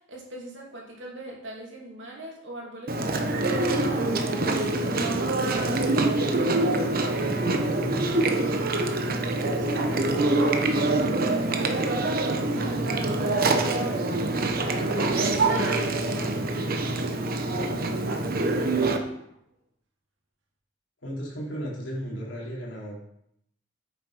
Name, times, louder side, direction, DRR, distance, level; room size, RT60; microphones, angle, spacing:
voice 1, 0.1-3.6 5.3-5.9 6.6-7.6 9.3-11.2 15.1-16.2 17.5-17.8, right 2 dB, 70° right, -2 dB, 2.8 m, -40 dB
Chewing mastication, 2.9-19.0, right 2 dB, 50° right, 1.0 m, -25 dB
voice 2, 7.3-8.1 12.4-14.1 15.4-17.0 21.0-23.0, equal, 70° left, -4 dB, 3.5 m, -36 dB
sound 1, 9.7-10.6 12.6-13.2 14.9-16.5 18.0-19.2, right 5 dB, 85° right, 1.7 m, -32 dB
8.5 x 6.6 x 4.9 m, 0.75 s
head